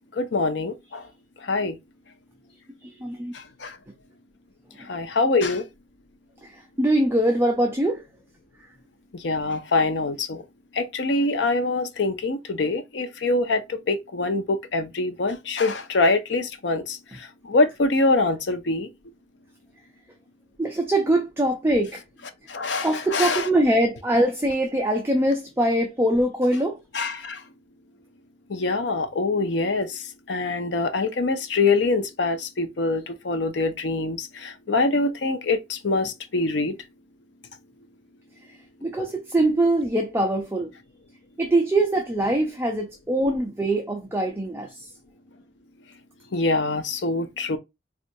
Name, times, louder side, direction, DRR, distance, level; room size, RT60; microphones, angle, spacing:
voice 1, 0.1-1.1 1.4-1.8 3.3-3.8 4.8-5.6 9.1-10.4 10.7-18.9 22.5-23.5 26.9-27.4 28.5-36.8 46.3-47.6, left 3 dB, 90° left, 0.6 m, -24 dB
voice 2, 2.8-3.3 6.4-8.0 20.6-22.0 22.8-26.8 38.8-40.7 41.4-44.9, right 1 dB, 15° right, 0.5 m, -23 dB
4.2 x 2.5 x 2.6 m
head